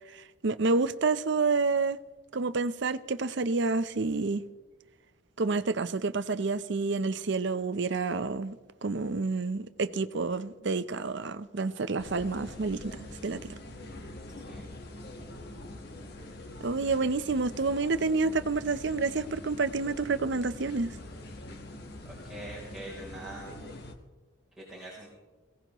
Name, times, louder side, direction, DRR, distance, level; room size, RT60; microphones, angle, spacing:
voice 1, 0.1-2.0 2.3-4.5 5.4-8.6 8.8-13.0 13.2-13.4 16.6-20.9, right 3 dB, 65° right, 0.6 m, -29 dB
sound 1, 12.0-23.9, left 1 dB, 55° left, 1.4 m, -44 dB
voice 2, 22.1-23.5 24.7-25.1, right 1 dB, 5° right, 3.5 m, -43 dB
22.0 x 17.0 x 3.0 m
head